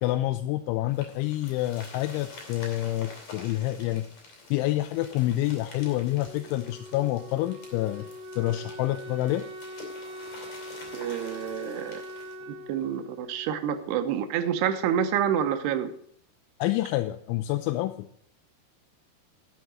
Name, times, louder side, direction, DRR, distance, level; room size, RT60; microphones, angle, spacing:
voice 1, 0.0-4.1 4.5-8.1 8.4-9.4 16.6-18.1, left 15 dB, 80° left, 8 dB, 2.8 m, -28 dB
sound 1, 0.9-12.4, left 3 dB, 40° left, 4.0 m, -48 dB
Wind instrument woodwind instrument, 5.8-14.5, equal, 45° right, 3.7 m, -43 dB
voice 2, 10.9-12.0 12.5-15.9, right 9 dB, 80° right, 8 dB, 2.4 m, -28 dB
11.5 x 7.5 x 6.1 m, 0.65 s
omnidirectional pair, 5.8 m